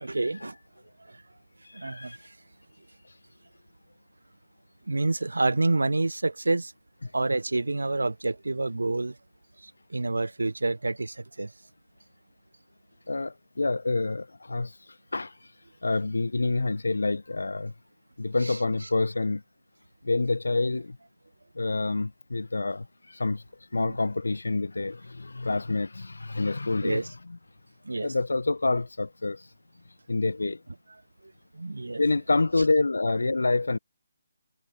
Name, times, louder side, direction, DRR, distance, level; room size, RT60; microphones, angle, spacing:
voice 1, 0.0-0.5 1.7-2.2 4.9-6.7 7.1-9.1 9.6-11.5 18.4-18.6 23.8-24.0 26.8-27.1 27.9-28.1 31.5-32.0, right 2 dB, 75° right, 0.6 m, -28 dB
voice 2, 1.7-2.2 13.1-14.7 15.1-15.3 15.8-17.7 18.2-19.4 20.0-21.0 21.6-23.4 23.7-27.4 28.0-29.4 30.1-30.6 32.0-33.8, left 3 dB, 75° left, 1.0 m, -27 dB
figure-of-eight pair, 150°, 0 cm